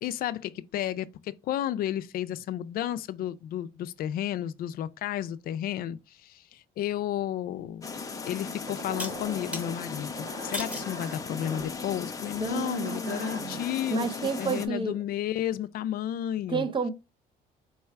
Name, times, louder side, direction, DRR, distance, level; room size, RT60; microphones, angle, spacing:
voice 1, 0.0-7.9 8.3-14.1 14.4-16.7, left 11 dB, 60° left, 0.4 m, -32 dB
sound 1, 7.6-7.7 9.0-9.7 10.5-10.9 11.6-12.0, left 1 dB, 5° right, 1.1 m, -36 dB
sound 2, 7.8-14.7, left 4 dB, 20° left, 0.7 m, -37 dB
sound 3, 8.7-13.8, right 2 dB, 85° right, 1.7 m, -43 dB
voice 2, 12.4-13.5 13.9-14.9 16.5-16.9, right 5 dB, 30° right, 0.6 m, -30 dB
4.6 x 2.3 x 4.3 m
cardioid pair, 110°, 17 cm